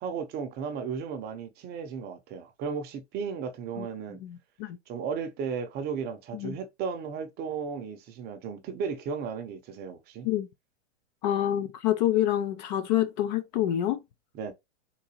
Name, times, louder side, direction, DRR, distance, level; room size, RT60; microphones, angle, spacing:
voice 1, 0.0-4.2 4.9-10.3 14.3-14.5, right 6 dB, 25° right, 0.6 m, -35 dB
voice 2, 4.2-4.8 6.3-6.5 10.2-10.5 11.2-14.0, left 12 dB, 40° left, 0.4 m, -27 dB
3.8 x 2.6 x 2.9 m
hypercardioid pair, 115°, 36 cm